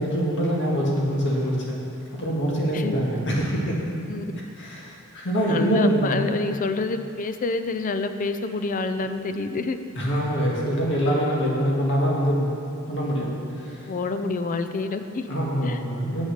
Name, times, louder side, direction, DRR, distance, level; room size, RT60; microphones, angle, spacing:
voice 1, 0.0-1.8 2.2-3.8 4.6-6.1 10.0-12.6 12.9-13.9 14.2-14.3 15.3-16.3, equal, 55° left, -3 dB, 1.8 m, -24 dB
voice 2, 5.5-9.8 13.9-15.3 15.6-15.8, left 3 dB, 40° left, 9 dB, 0.4 m, -27 dB
8.2 x 6.2 x 6.5 m, 2.6 s
head